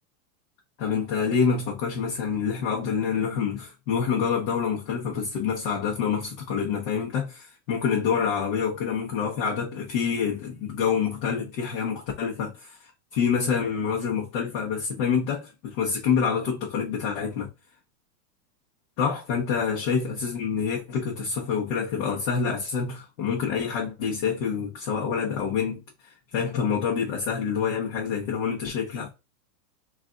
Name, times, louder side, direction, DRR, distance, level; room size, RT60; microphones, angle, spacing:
voice 1, 0.8-17.5 19.0-29.1, left 6 dB, 35° left, 0.8 m, -27 dB
3.2 x 2.5 x 3.7 m
supercardioid pair, 160°, 48 cm